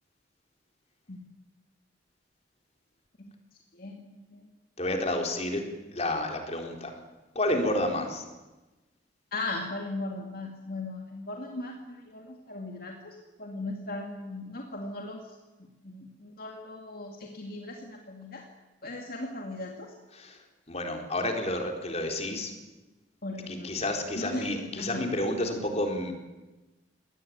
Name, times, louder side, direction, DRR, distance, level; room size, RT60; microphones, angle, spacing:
voice 1, 3.7-4.5 9.3-15.2 15.8-18.5 18.8-19.9 23.2-23.8 24.2-25.0, left 2 dB, 55° left, 2 dB, 2.3 m, -38 dB
voice 2, 4.8-5.7 5.9-6.9 7.4-8.2 20.1-20.4 20.7-22.5 23.5-26.1, left 1 dB, 35° left, 3 dB, 3.8 m, -30 dB
23.0 x 19.0 x 9.4 m, 1.1 s
head